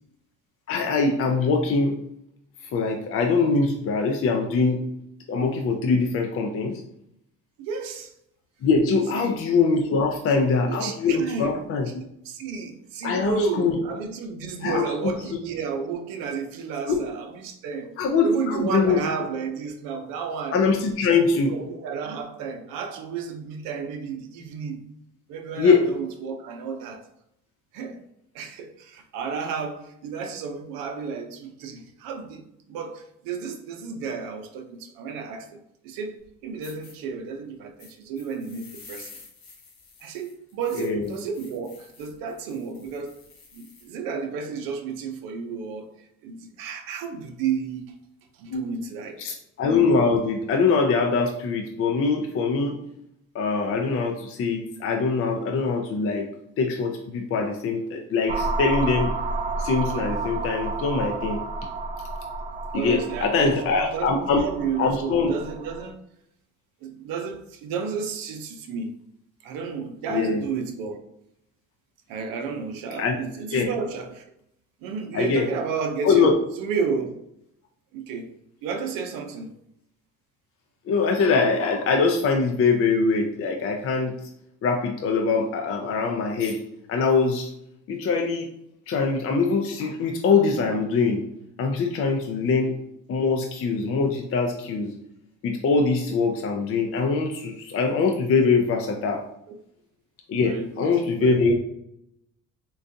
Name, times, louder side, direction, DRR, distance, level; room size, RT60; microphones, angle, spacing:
voice 1, 0.7-2.0 2.7-4.8 5.3-6.8 8.6-11.9 13.0-13.8 14.6-15.1 16.9-17.0 18.0-19.0 20.5-21.5 25.6-25.9 40.8-41.1 48.5-48.6 49.2-52.8 53.3-56.3 56.6-59.1 59.6-61.4 62.7-64.4 64.8-65.3 70.1-70.4 73.0-73.2 73.5-73.7 75.1-75.5 76.0-76.3 80.9-84.1 84.6-86.6 86.9-87.5 87.9-88.5 88.9-91.2 91.6-92.7 93.1-94.9 95.4-99.2 100.3-101.5, left 4 dB, 40° left, 2 dB, 0.5 m, -23 dB
voice 2, 7.6-8.1 9.1-9.4 10.4-11.6 12.2-17.9 18.2-20.6 21.0-24.8 25.3-27.0 27.7-28.0 28.3-39.2 40.0-43.1 43.5-45.9 46.2-47.9 48.4-49.2 62.7-63.6 63.9-66.0 66.8-69.0 69.4-71.0 72.1-74.3 74.8-77.1 77.9-78.3 78.6-79.6 98.3-98.5 99.5-99.6 100.4-100.9 101.2-101.4, right 5 dB, 80° right, 5 dB, 0.6 m, -32 dB
sound 1, 36.2-36.3 36.6-36.9 37.8-43.9, left 4 dB, 80° left, 1.0 m, -49 dB
sound 2, 58.3-65.9, right 3 dB, 25° right, 0.3 m, -31 dB
3.8 x 2.3 x 2.6 m, 0.76 s
supercardioid pair, 85°, 34 cm